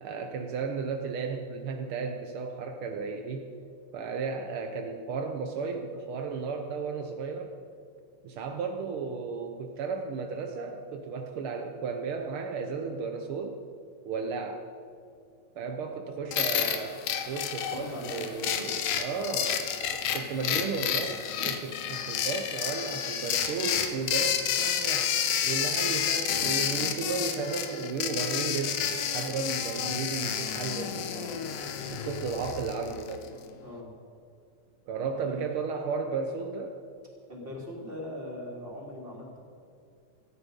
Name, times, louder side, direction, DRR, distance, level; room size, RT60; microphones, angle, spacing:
voice 1, 0.0-3.5 3.9-7.5 8.2-13.6 14.0-14.7 15.6-17.0 17.3-25.1 25.5-28.8 29.1-33.3 34.9-36.8, right 5 dB, 75° right, 4 dB, 1.2 m, -34 dB
sound 1, 16.3-33.3, left 9 dB, 80° left, 2.6 m, -30 dB
voice 2, 17.7-18.2 18.6-18.7 21.4-21.5 33.6-34.0 35.2-35.4 37.3-39.4, left 1 dB, 15° right, -2 dB, 3.2 m, -40 dB
18.0 x 14.0 x 5.3 m, 2.4 s
omnidirectional pair, 3.6 m